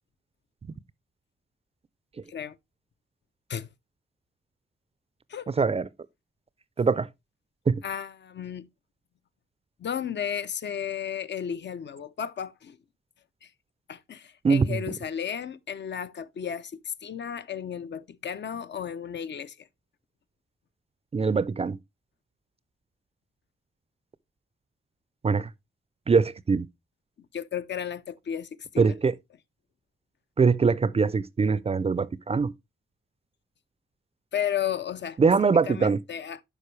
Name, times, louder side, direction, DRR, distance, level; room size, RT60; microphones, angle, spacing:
voice 1, 5.6-5.9 6.8-7.1 7.7-7.8 14.4-14.8 21.1-21.8 25.2-25.5 26.1-26.7 28.8-29.1 30.4-32.5 35.2-36.0, right 5 dB, 30° right, 0.4 m, -22 dB
voice 2, 7.8-8.7 9.8-12.8 13.4-13.5 13.9-19.7 27.3-28.9 34.3-35.2 35.5-36.4, left 8 dB, 60° left, 0.5 m, -33 dB
11.5 x 5.1 x 3.1 m
wide cardioid pair, 165°, 21 cm